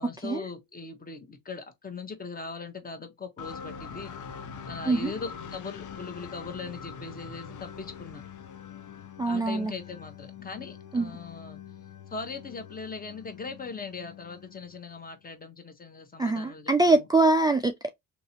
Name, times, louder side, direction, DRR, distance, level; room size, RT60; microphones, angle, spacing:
voice 1, 0.0-4.1 4.7-8.2 9.3-11.6 12.1-17.0, left 4 dB, 25° left, 1.0 m, -40 dB
sound 1, 3.4-15.2, left 7 dB, 60° left, 0.7 m, -44 dB
voice 2, 9.2-9.7 10.9-11.1 16.2-17.9, right 2 dB, 10° right, 0.3 m, -23 dB
2.9 x 2.9 x 2.7 m
cardioid pair, 100°, 36 cm